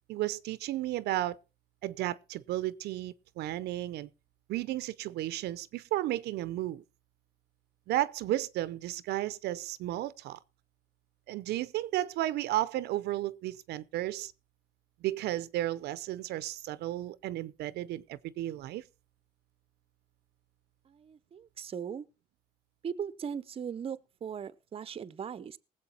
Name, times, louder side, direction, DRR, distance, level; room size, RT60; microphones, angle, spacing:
voice 1, 0.1-1.4 1.8-4.1 4.5-6.8 7.9-10.4 11.3-14.3 15.0-18.8, right 15 dB, 75° right, 0.6 m, -33 dB
voice 2, 20.8-22.1 22.8-25.6, right 7 dB, 35° right, 0.7 m, -39 dB
18.5 x 7.9 x 4.3 m
cardioid pair, 110°, 17 cm